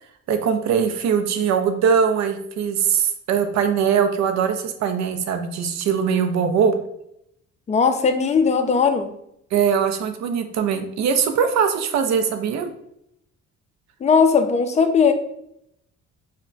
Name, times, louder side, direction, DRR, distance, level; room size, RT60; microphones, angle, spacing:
voice 1, 0.3-6.7 9.5-12.7, right 7 dB, 65° right, 7 dB, 0.5 m, -21 dB
voice 2, 7.7-9.1 14.0-15.1, left 5 dB, 25° left, 7 dB, 0.3 m, -18 dB
2.2 x 2.2 x 3.7 m, 0.75 s
cardioid pair, 90°, 30 cm